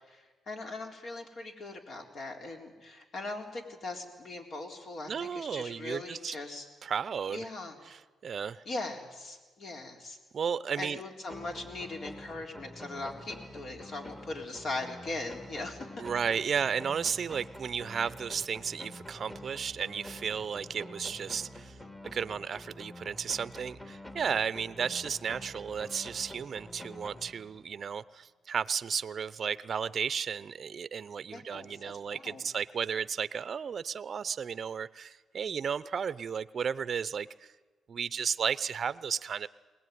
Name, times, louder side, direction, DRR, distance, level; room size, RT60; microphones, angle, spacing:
voice 1, 0.1-6.7 7.3-7.8 8.7-10.2 10.8-15.9 31.3-32.4, left 2 dB, 55° left, 3 dB, 3.9 m, -40 dB
voice 2, 5.1-6.4 6.8-7.5 7.9-8.6 10.3-11.0 16.0-21.8 22.1-37.5 37.9-39.5, right 7 dB, 50° right, 16 dB, 0.7 m, -34 dB
sound 1, 11.3-27.8, left 1 dB, 15° left, 2.4 m, -47 dB
21.5 x 18.5 x 9.4 m, 1.2 s
cardioid pair, 90°, 0 cm